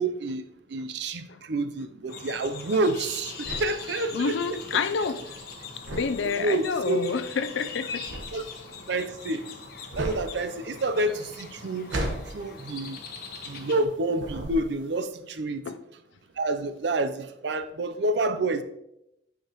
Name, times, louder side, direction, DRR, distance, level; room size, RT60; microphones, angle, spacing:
voice 1, 0.0-4.6 6.4-7.0 8.3-8.5 8.9-9.4 9.9-11.9 12.3-13.0 13.4-15.6 16.4-18.6, right 2 dB, 65° right, 0.5 m, -28 dB
sound 1, 2.1-13.8, left 5 dB, 50° left, 1.0 m, -41 dB
sound 2, 2.7-13.9 14.2-15.0, right 1 dB, 80° right, 1.2 m, -37 dB
voice 2, 4.1-5.2 5.9-8.5 15.7-15.8, left 5 dB, 80° left, 0.5 m, -29 dB
9.0 x 5.1 x 3.0 m
head